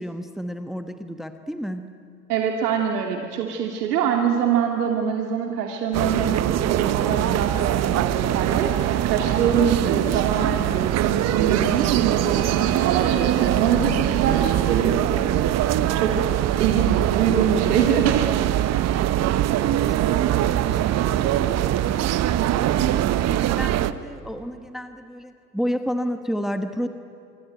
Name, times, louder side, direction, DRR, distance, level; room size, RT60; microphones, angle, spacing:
voice 1, 0.0-1.8 16.2-16.6 18.6-20.4 20.8-22.2 22.5-26.9, equal, ahead, 8 dB, 1.3 m, -32 dB
voice 2, 2.3-15.5 15.9-16.3 16.6-18.6, right 7 dB, 70° right, 2 dB, 2.6 m, -24 dB
sound 1, 5.9-23.9, right 12 dB, 30° right, 1.1 m, -22 dB
Laughter, 9.9-15.0 15.3-17.3, right 8 dB, 50° right, 4.7 m, -39 dB
27.0 x 23.5 x 9.2 m, 2.5 s
hypercardioid pair, 90°, 49 cm